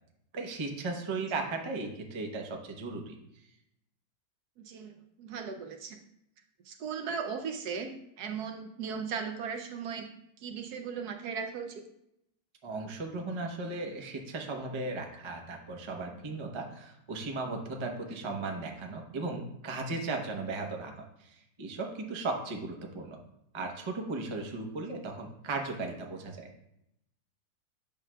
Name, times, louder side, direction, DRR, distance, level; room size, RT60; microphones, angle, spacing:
voice 1, 0.3-3.2 12.6-23.2 23.5-26.5, right 3 dB, 45° right, 2 dB, 0.3 m, -36 dB
voice 2, 4.6-6.0 6.6-10.1 10.4-11.8, right 6 dB, 70° right, 5 dB, 1.0 m, -37 dB
8.9 x 6.1 x 2.2 m, 0.80 s
omnidirectional pair, 2.0 m